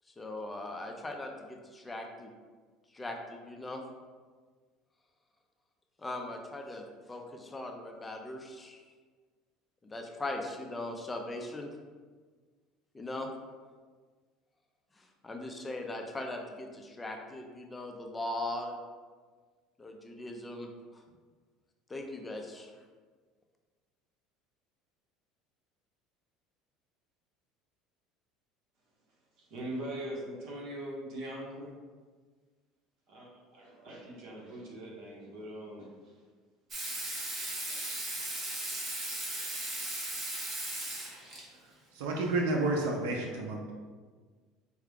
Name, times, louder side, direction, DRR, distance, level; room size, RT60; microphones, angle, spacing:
voice 1, 0.2-2.3 2.9-3.8 6.0-8.8 9.8-11.7 12.9-13.3 15.2-18.8 19.8-20.7 21.9-22.7, left 2 dB, 15° left, 3 dB, 0.4 m, -39 dB
voice 2, 29.4-31.7 33.1-36.1 37.6-37.8 39.3-39.4 41.5-41.6, right 1 dB, 60° right, -3 dB, 1.3 m, -42 dB
Water tap faucet / Sink (filling or washing), 36.7-41.4 42.9-43.0, right 1 dB, 35° right, 1.1 m, -37 dB
voice 3, 41.9-43.7, right 2 dB, 90° right, 1 dB, 0.5 m, -30 dB
4.6 x 2.3 x 3.5 m, 1.5 s
supercardioid pair, 120°, 0 cm